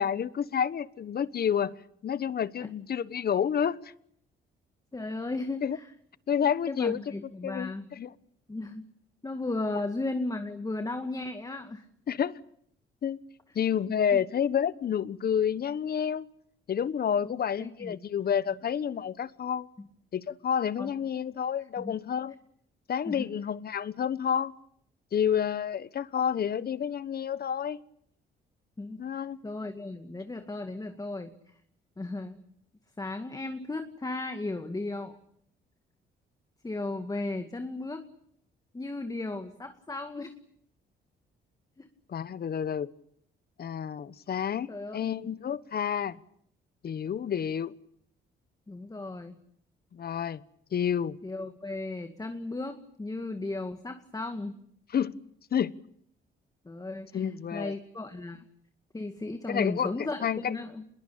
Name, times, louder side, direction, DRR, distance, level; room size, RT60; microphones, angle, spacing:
voice 1, 0.0-3.9 5.6-5.8 6.3-7.0 7.4-8.1 12.1-12.4 13.0-13.2 13.5-16.3 16.7-19.7 20.1-22.4 22.9-24.5 25.1-27.8 29.0-29.4 42.1-42.9 43.6-46.2 46.8-47.7 49.9-50.4 50.7-51.2 54.9-55.2 55.5-55.7 57.1-57.7 59.5-59.9 60.2-60.6, left 8 dB, 50° left, 1.2 m, -29 dB
voice 2, 4.9-5.9 6.7-7.9 8.5-8.8 9.2-11.9 14.1-14.2 17.2-17.3 17.6-18.0 20.8-20.9 21.8-22.0 23.1-23.3 28.8-31.3 32.0-32.4 33.0-35.2 36.6-38.1 38.7-40.3 41.8-41.9 44.7-45.0 48.7-49.4 51.2-54.6 56.6-58.4 58.9-60.8, left 2 dB, 20° left, 2.2 m, -35 dB
26.5 x 22.0 x 8.7 m
cardioid pair, 90°, 20 cm